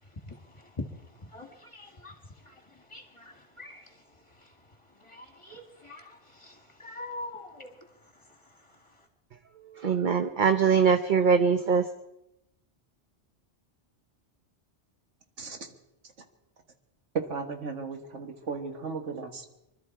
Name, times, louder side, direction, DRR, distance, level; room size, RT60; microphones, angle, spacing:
voice 1, 0.3-0.8 1.3-2.1 2.5-2.6 2.9-3.8 5.0-7.7, left 2 dB, 25° left, 4 dB, 2.1 m, -43 dB
voice 2, 9.8-11.8, right 6 dB, 45° right, 7 dB, 0.9 m, -22 dB
voice 3, 15.4-15.7 17.1-19.5, right 5 dB, 85° right, 5 dB, 2.0 m, -35 dB
24.5 x 13.0 x 4.6 m, 0.88 s
omnidirectional pair, 1.2 m